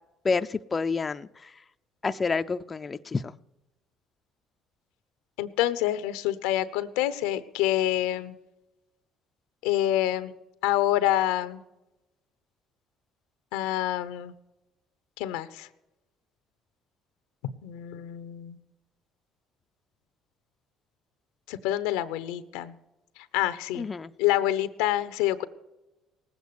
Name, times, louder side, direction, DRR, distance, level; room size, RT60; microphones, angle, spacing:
voice 1, 0.2-1.5 2.0-3.3 23.8-24.1, left 4 dB, 30° left, 10 dB, 0.5 m, -29 dB
voice 2, 5.4-8.4 9.6-10.3 10.6-11.6 13.5-14.3 15.2-15.7 17.6-18.6 21.5-22.8 23.2-23.9 24.2-25.4, left 13 dB, 90° left, 14 dB, 0.7 m, -27 dB
19.0 x 8.2 x 6.8 m, 0.98 s
supercardioid pair, 85°, 0 cm